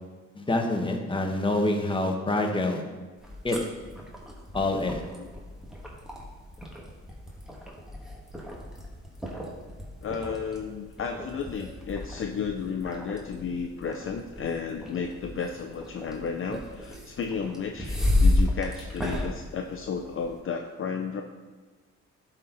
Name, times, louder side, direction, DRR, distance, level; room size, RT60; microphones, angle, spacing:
voice 1, 0.3-2.8 3.4-3.6 4.5-5.0, left 2 dB, 15° left, 2 dB, 1.3 m, -26 dB
sound 1, 3.2-20.4, left 2 dB, ahead, 1.8 m, -32 dB
voice 2, 10.0-21.2, left 6 dB, 45° left, 4 dB, 0.6 m, -33 dB
11.5 x 4.4 x 4.0 m, 1.3 s
cardioid pair, 90°, 30 cm